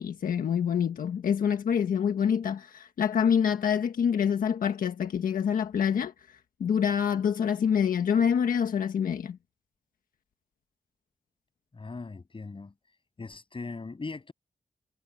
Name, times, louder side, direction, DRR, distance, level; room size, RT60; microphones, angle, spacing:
voice 1, 0.0-9.4, left 7 dB, 90° left, 1.5 m, -26 dB
voice 2, 11.7-12.7 13.2-14.3, left 3 dB, 40° left, 7.4 m, -39 dB
cardioid pair, 80°, 14 cm